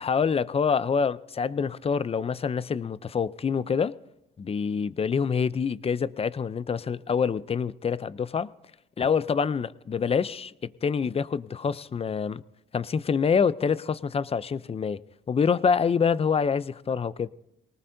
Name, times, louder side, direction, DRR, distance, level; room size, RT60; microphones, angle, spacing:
voice 1, 0.0-3.9 4.4-8.5 9.0-12.4 12.7-15.0 15.3-17.3, left 6 dB, 30° left, 0.5 m, -26 dB
23.0 x 19.0 x 2.7 m
cardioid pair, 90°, 20 cm